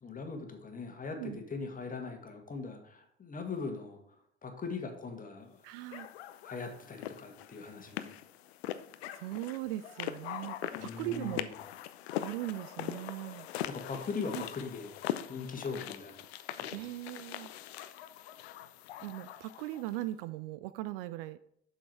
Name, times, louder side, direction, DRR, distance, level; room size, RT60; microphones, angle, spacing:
voice 1, 0.0-5.6 6.4-8.1 10.7-11.5 13.6-14.9 15.3-16.1 16.6-16.8, left 4 dB, 25° left, 5 dB, 1.7 m, -40 dB
voice 2, 5.6-6.1 9.1-11.5 12.2-13.5 16.7-17.5 19.0-21.4, right 15 dB, 55° right, 15 dB, 0.5 m, -39 dB
sound 1, 5.9-20.0, left 12 dB, 65° left, 0.6 m, -42 dB
7.4 x 6.5 x 4.5 m, 0.70 s
figure-of-eight pair, 60°, 34 cm